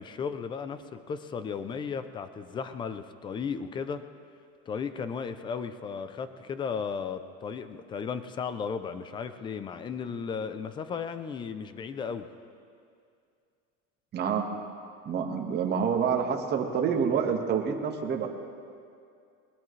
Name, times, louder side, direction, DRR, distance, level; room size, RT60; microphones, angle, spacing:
voice 1, 0.0-4.0 4.7-12.3, left 6 dB, 15° left, 11 dB, 0.3 m, -35 dB
voice 2, 14.1-14.5 15.0-18.3, right 7 dB, 25° right, 2 dB, 1.5 m, -27 dB
21.5 x 19.5 x 3.2 m, 2.4 s
supercardioid pair, 155°, 38 cm